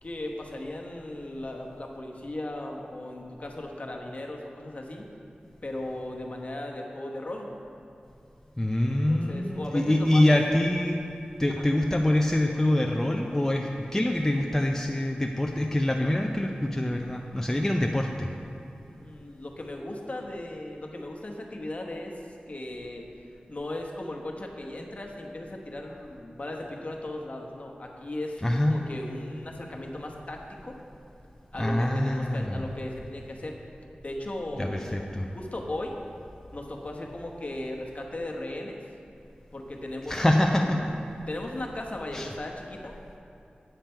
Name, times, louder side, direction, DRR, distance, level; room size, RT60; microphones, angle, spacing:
voice 1, 0.0-5.1 5.6-7.5 9.1-10.2 11.5-11.7 18.9-22.2 22.5-23.1 23.5-30.8 31.5-33.6 34.0-36.0 36.5-38.8 39.5-43.0, left 1 dB, 45° left, 0 dB, 1.0 m, -37 dB
voice 2, 8.6-11.0 11.4-18.3 28.4-28.8 31.6-32.6 34.6-35.3 40.1-40.8 42.1-42.3, left 1 dB, 15° left, 1 dB, 0.5 m, -25 dB
8.9 x 7.3 x 4.5 m, 2.7 s
wide cardioid pair, 90°, 3 cm